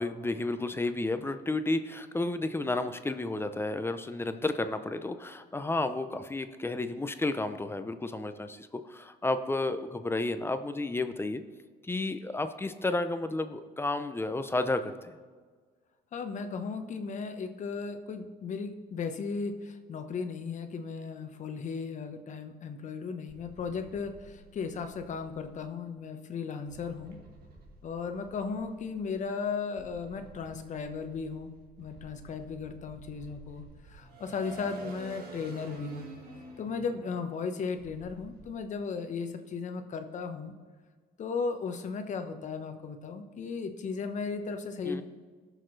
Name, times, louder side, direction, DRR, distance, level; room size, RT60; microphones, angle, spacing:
voice 1, 0.0-11.4 11.8-15.2 44.9-45.0, left 2 dB, 15° left, 9 dB, 0.6 m, -32 dB
voice 2, 16.1-27.2 27.8-31.5 31.8-36.1 36.6-40.5 41.2-45.0, left 5 dB, 45° left, 7 dB, 1.0 m, -36 dB
sound 1, 23.3-25.6 26.7-29.2 29.7-38.5, right 2 dB, 65° right, 2.2 m, -50 dB
18.0 x 6.7 x 3.2 m, 1.5 s
cardioid pair, 110°, 17 cm